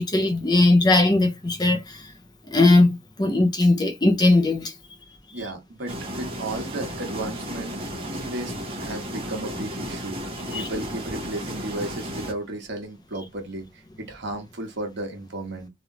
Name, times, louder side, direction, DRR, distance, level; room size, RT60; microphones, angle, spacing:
voice 1, 0.0-2.0 2.5-4.7 10.5-10.7, left 2 dB, 20° left, 0.6 m, -19 dB
voice 2, 5.3-8.5 8.8-10.2 10.5-15.7, right 2 dB, 60° right, 1.2 m, -34 dB
sound 1, 5.9-12.3, equal, 30° right, 1.0 m, -33 dB
3.3 x 2.6 x 2.9 m
head